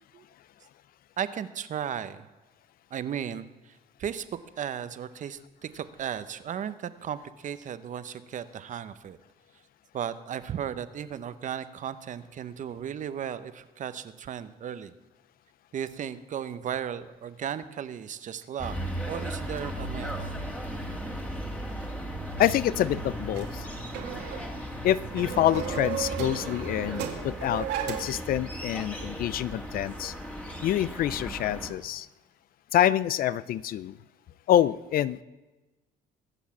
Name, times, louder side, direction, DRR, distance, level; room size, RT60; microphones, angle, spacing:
voice 1, 1.2-2.3 2.9-9.2 9.9-14.9 15.7-18.8 19.1-20.4, right 9 dB, 50° right, 13 dB, 0.9 m, -35 dB
sound 1, 18.6-31.7, equal, 10° left, 2.3 m, -36 dB
voice 2, 22.4-23.7 24.8-30.1 30.6-32.1 32.7-34.0 34.5-35.2, left 12 dB, 60° left, 18 dB, 0.5 m, -26 dB
sound 2, 23.3-28.3, right 9 dB, 90° right, 2.2 m, -35 dB
21.5 x 7.2 x 7.3 m, 1.1 s
cardioid pair, 110°, 17 cm